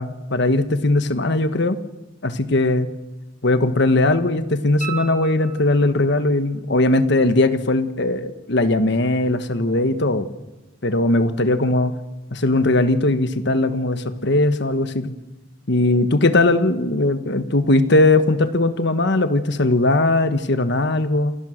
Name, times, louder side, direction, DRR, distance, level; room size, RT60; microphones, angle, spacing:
voice 1, 0.0-1.8 2.2-2.9 3.4-10.3 10.8-11.9 12.3-15.1 15.7-21.4, left 2 dB, 60° left, 10 dB, 1.4 m, -19 dB
sound 1, 4.8-6.1 8.9-9.0, right 8 dB, 40° right, 1.6 m, -34 dB
28.0 x 17.0 x 6.6 m, 1.0 s
head